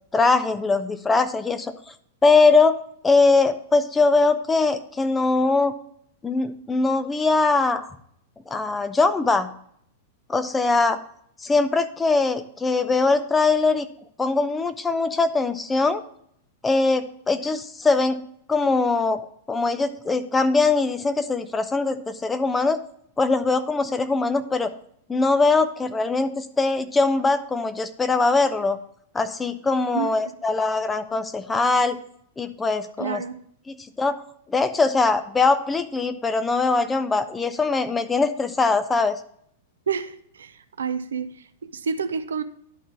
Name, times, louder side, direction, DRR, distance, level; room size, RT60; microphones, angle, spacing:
voice 1, 0.1-1.7 2.2-2.8 3.0-5.7 6.2-7.9 8.5-9.5 10.3-11.0 11.4-13.9 14.2-16.0 16.6-18.2 18.5-19.2 19.5-22.8 23.2-24.7 25.1-28.8 29.1-32.0 32.4-33.2 33.7-34.2 34.5-39.2, left 3 dB, 10° left, 0.6 m, -21 dB
voice 2, 29.9-30.3 33.0-33.4 39.9-42.4, right 6 dB, 70° right, 0.5 m, -29 dB
11.5 x 4.0 x 4.5 m
figure-of-eight pair, 95°, 0 cm